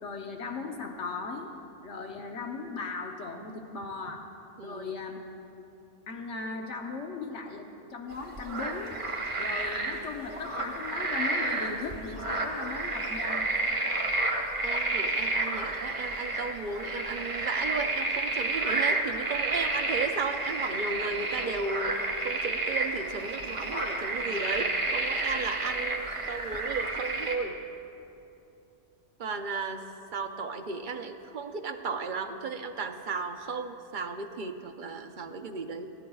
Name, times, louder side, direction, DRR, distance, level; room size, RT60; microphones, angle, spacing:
voice 1, 0.0-1.5 1.8-4.2 4.6-5.2 5.6-5.7 6.1-9.0 9.4-13.4, left 4 dB, 75° left, 2 dB, 1.1 m, -38 dB
voice 2, 4.6-4.9 14.6-27.6 29.2-29.8 30.1-35.9, right 4 dB, 50° right, 7 dB, 0.7 m, -35 dB
sound 1, 8.1-27.4, right 2 dB, 25° right, 1.3 m, -31 dB
29.0 x 12.0 x 2.3 m, 2.8 s
omnidirectional pair, 1.2 m